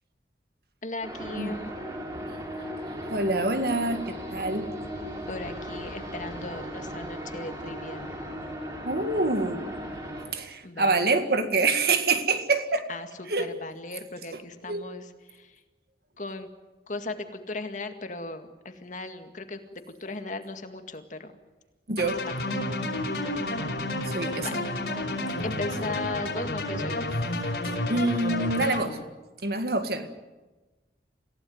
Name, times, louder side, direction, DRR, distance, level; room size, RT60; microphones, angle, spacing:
voice 1, 0.8-1.7 5.3-8.1 10.6-11.0 12.9-15.1 15.4-15.5 16.2-16.5 16.9-19.6 19.9-21.3 22.3-22.5 24.4-24.5 25.4-27.0, left 2 dB, 45° left, 7 dB, 2.0 m, -37 dB
sound 1, 1.0-10.3, equal, 20° right, 5.5 m, -37 dB
voice 2, 3.1-4.7 8.8-9.9 10.3-12.9 13.3-13.5 14.3-14.8 21.9-22.2 24.1-24.6 27.6-29.0 29.4-30.1, right 3 dB, 60° right, 8 dB, 1.9 m, -26 dB
sound 2, 22.0-28.8, left 1 dB, 70° left, 4.8 m, -30 dB
26.5 x 16.0 x 9.6 m, 1.2 s
head